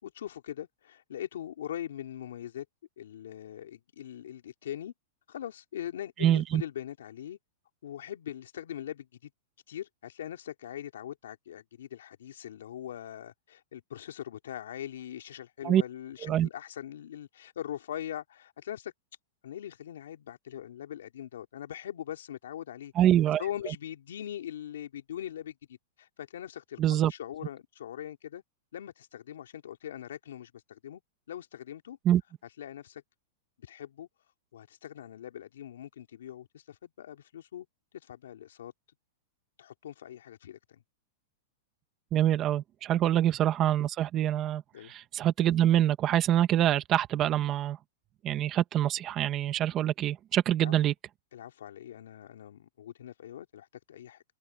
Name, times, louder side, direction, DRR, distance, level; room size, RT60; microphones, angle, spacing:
voice 1, 0.0-2.6 3.0-4.9 5.3-7.4 7.8-9.3 9.7-18.9 19.4-22.9 23.4-28.4 28.7-31.0 31.3-32.0 32.6-33.0 33.6-34.1 34.5-37.6 38.0-38.7 39.6-40.8 43.0-43.1 44.7-44.9 50.6-50.7 51.3-54.2, left 10 dB, 85° left, 3.4 m, -41 dB
voice 2, 6.2-6.6 15.6-15.8 16.2-16.5 23.0-23.4 26.8-27.1 32.0-32.2 42.1-44.6 44.9-47.8 48.2-50.9, right 11 dB, 25° right, 1.3 m, -25 dB
open air
supercardioid pair, 165°, 0 cm